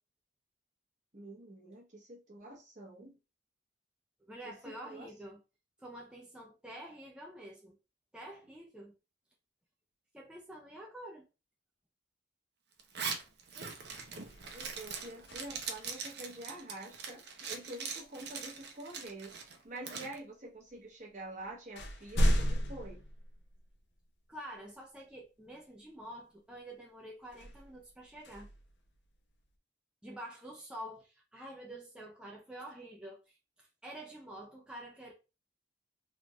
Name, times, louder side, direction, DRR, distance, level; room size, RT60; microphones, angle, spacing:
voice 1, 1.1-3.1 4.4-5.1 14.5-23.0, right 2 dB, 40° right, 1.1 m, -47 dB
voice 2, 4.3-5.4 5.8-7.7 8.1-8.9 10.1-11.3 24.3-28.5 30.0-35.1, right 1 dB, 5° right, 0.4 m, -48 dB
Zipper (clothing), 12.8-20.1, right 5 dB, 55° right, 0.7 m, -42 dB
sound 1, 13.2-13.4 13.8-15.9 18.0-18.2 19.0-19.8 20.7-20.8 21.2-24.0 24.5-24.6 27.2-29.4, equal, 60° left, 0.7 m, -35 dB
3.4 x 2.5 x 3.0 m
head